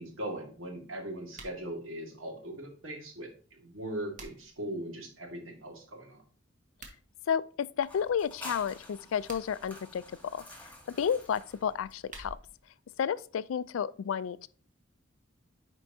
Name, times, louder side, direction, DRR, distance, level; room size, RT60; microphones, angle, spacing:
voice 1, 0.0-6.2, right 1 dB, 80° right, 1.9 m, -40 dB
sound 1, 1.3-1.6 3.7-4.6 6.6-7.0 9.0-9.7 11.7-12.7, right 2 dB, 40° right, 1.4 m, -50 dB
voice 2, 7.3-10.4 11.0-12.4 13.0-14.5, left 7 dB, 85° left, 0.3 m, -31 dB
sound 2, 7.8-12.4, left 1 dB, 10° left, 1.5 m, -49 dB
9.8 x 4.5 x 2.7 m
head